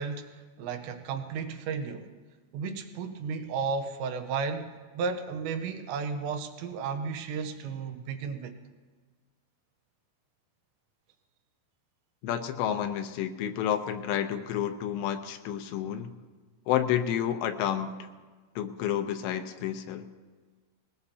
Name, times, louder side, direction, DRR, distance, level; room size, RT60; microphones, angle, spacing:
voice 1, 0.0-2.1 2.5-8.6, right 5 dB, 85° right, 7 dB, 3.1 m, -34 dB
voice 2, 12.2-16.1 16.7-18.1 18.6-20.1, left 10 dB, 80° left, 6 dB, 2.9 m, -30 dB
20.0 x 19.5 x 2.8 m, 1.4 s
omnidirectional pair, 5.2 m